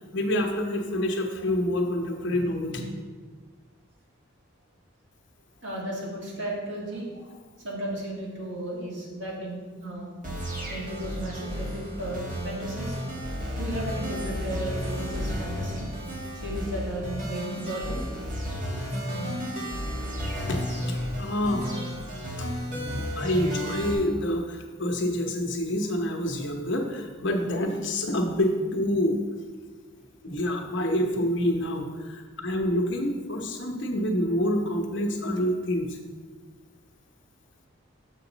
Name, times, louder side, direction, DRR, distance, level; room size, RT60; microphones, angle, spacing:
voice 1, 0.1-2.8 10.5-10.7 13.4-13.5 20.5-22.0 22.4-29.2 30.2-36.0, left 1 dB, 65° left, 2 dB, 0.9 m, -27 dB
voice 2, 2.2-2.8 5.6-7.1 7.6-10.1 10.7-13.0 13.6-15.9 16.3-18.0 23.0-23.1, right 1 dB, 65° right, -4 dB, 2.2 m, -34 dB
sound 1, 10.2-23.9, equal, 40° right, 1.7 m, -33 dB
7.0 x 6.1 x 4.0 m, 1.4 s
head